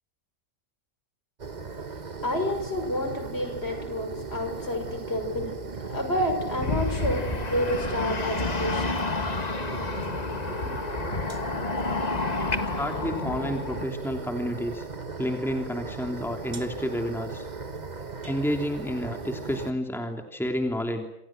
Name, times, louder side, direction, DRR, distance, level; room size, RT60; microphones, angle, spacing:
sound 1, 1.4-19.7, right 4 dB, 35° right, 1.4 m, -37 dB
voice 1, 2.2-5.6 5.8-8.9 10.5-10.7, left 1 dB, 50° left, 6 dB, 6.4 m, -29 dB
sound 2, 6.6-13.8, left 3 dB, 30° left, 1.6 m, -30 dB
voice 2, 12.8-14.9 15.2-17.4 18.2-21.1, equal, ahead, 4 dB, 3.1 m, -30 dB
28.0 x 27.0 x 6.2 m, 0.85 s
omnidirectional pair, 1.4 m